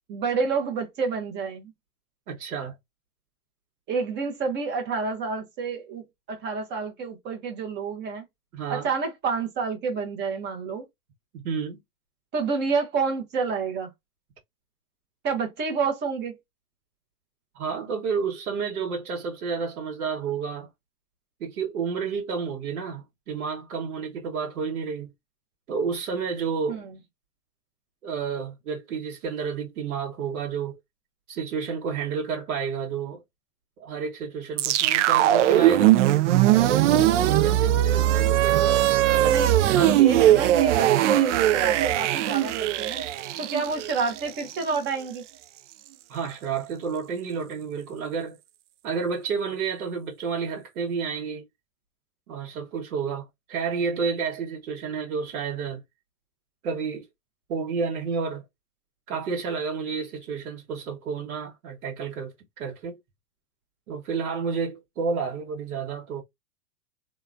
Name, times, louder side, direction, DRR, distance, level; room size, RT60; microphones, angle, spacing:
voice 1, 0.1-1.7 3.9-8.2 8.7-10.8 12.3-13.9 15.2-16.3 26.7-26.9 39.2-43.0 43.4-45.2, right 5 dB, 25° right, 0.8 m, -29 dB
voice 2, 2.3-2.8 8.5-8.9 11.3-11.8 17.5-20.7 21.4-25.1 25.7-26.8 28.0-30.8 31.3-33.2 33.8-36.0 36.9-39.4 39.6-40.1 46.1-48.4 48.8-51.5 52.3-55.8 56.6-57.1 57.5-58.4 59.1-63.0 63.9-66.2, right 5 dB, 75° right, 1.2 m, -30 dB
sound 1, 34.6-44.8, right 13 dB, 55° right, 0.5 m, -20 dB
2.8 x 2.2 x 2.4 m
hypercardioid pair, 125°, 44 cm